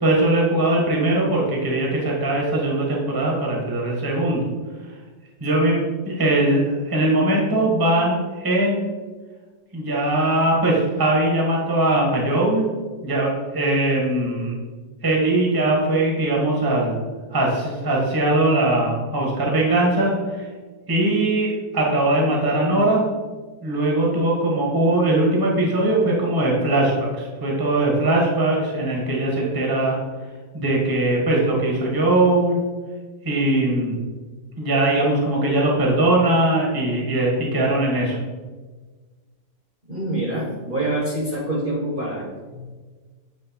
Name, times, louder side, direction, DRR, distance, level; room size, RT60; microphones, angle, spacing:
voice 1, 0.0-4.4 5.4-8.8 9.7-12.6 13.0-14.6 15.0-17.0 17.3-20.5 20.9-23.0 23.6-30.0 30.5-32.6 33.2-34.0 34.6-38.2, right 1 dB, 15° right, -2 dB, 1.1 m, -20 dB
voice 2, 39.9-42.7, right 1 dB, 35° right, -4 dB, 1.2 m, -26 dB
7.7 x 3.1 x 4.4 m, 1.4 s
omnidirectional pair, 1.7 m